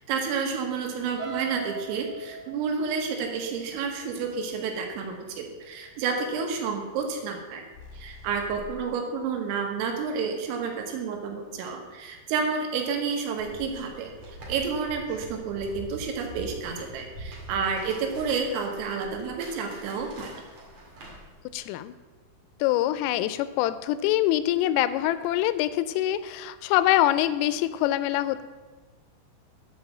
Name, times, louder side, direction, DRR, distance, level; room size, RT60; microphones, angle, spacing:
voice 1, 0.0-7.7 7.9-14.1 14.5-20.3, right 5 dB, 85° right, 3 dB, 3.9 m, -30 dB
sound 1, 1.2-5.1 5.6-5.9 6.3-6.4, right 5 dB, 70° right, 2.6 m, -41 dB
sound 2, 7.7-8.9, left 1 dB, 70° left, 2.1 m, -45 dB
sound 3, 13.4-21.5, right 1 dB, 45° right, 2.2 m, -44 dB
voice 2, 21.5-21.9 22.6-28.4, left 13 dB, 90° left, 14 dB, 3.2 m, -24 dB
9.7 x 4.9 x 7.3 m, 1.3 s
omnidirectional pair, 5.8 m